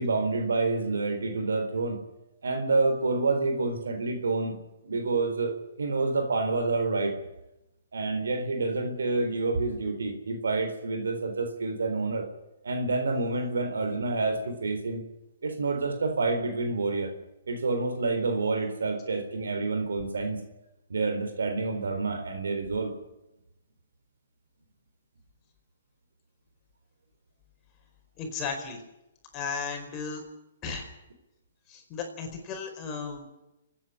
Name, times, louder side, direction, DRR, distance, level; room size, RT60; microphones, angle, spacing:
voice 1, 0.0-2.0 2.4-4.6 4.8-7.1 7.9-12.3 12.6-15.0 15.4-17.1 17.5-20.4 20.9-22.9, right 3 dB, 85° right, 6 dB, 4.0 m, -28 dB
voice 2, 28.2-28.8 29.3-30.2 30.6-30.9 31.7-33.4, left 5 dB, 30° left, 3 dB, 4.7 m, -35 dB
29.0 x 9.8 x 9.9 m, 0.91 s
hypercardioid pair, 140°, 0 cm